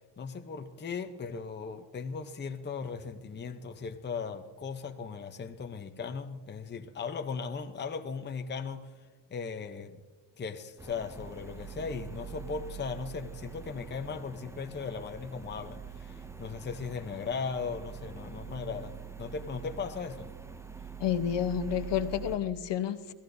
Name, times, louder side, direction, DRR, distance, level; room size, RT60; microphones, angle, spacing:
voice 1, 0.2-9.0 9.3-10.0 10.4-20.3, left 5 dB, 25° left, 0.7 m, -38 dB
sound 1, 10.8-22.4, right 7 dB, 5° right, 0.4 m, -44 dB
voice 2, 21.0-23.1, left 9 dB, 65° left, 0.9 m, -30 dB
27.5 x 17.5 x 2.7 m
wide cardioid pair, 170°, 45 cm